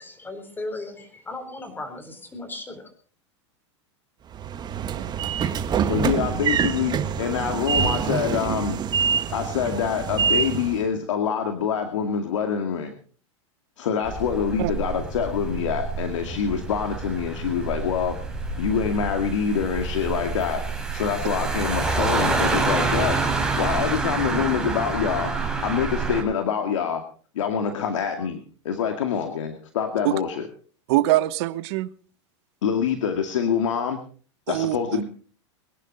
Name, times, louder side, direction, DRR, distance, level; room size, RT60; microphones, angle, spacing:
voice 1, 0.0-2.8, left 2 dB, 15° left, 4.0 m, -36 dB
Train / Sliding door, 4.3-10.8, right 7 dB, 25° right, 1.5 m, -25 dB
voice 2, 4.7-5.3 14.6-14.7 30.0-30.2 30.9-31.9 34.5-35.0, right 16 dB, 60° right, 1.3 m, -24 dB
voice 3, 5.9-8.8 9.3-12.9 13.8-18.2 18.6-20.6 20.9-23.2 23.6-25.3 25.6-27.0 27.3-30.4 32.6-34.0 34.5-35.0, left 7 dB, 85° left, 2.3 m, -25 dB
sound 1, 14.1-26.2, right 3 dB, 5° right, 5.3 m, -27 dB
23.5 x 11.0 x 4.2 m
supercardioid pair, 120°, 16 cm